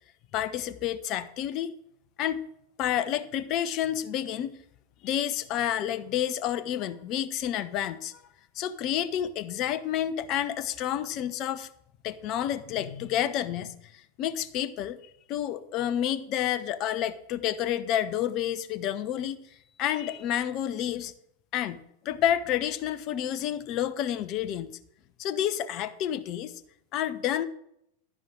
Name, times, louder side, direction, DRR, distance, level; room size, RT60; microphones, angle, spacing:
voice 1, 0.3-1.7 2.2-2.4 2.8-4.6 5.0-8.2 8.5-11.7 12.0-13.7 14.2-15.0 15.3-19.5 19.8-21.1 21.5-21.8 22.0-24.7 25.2-26.6 26.9-27.5, left 10 dB, 40° left, 15 dB, 0.8 m, -29 dB
11.5 x 10.5 x 3.7 m, 0.74 s
figure-of-eight pair, 90°, 0 cm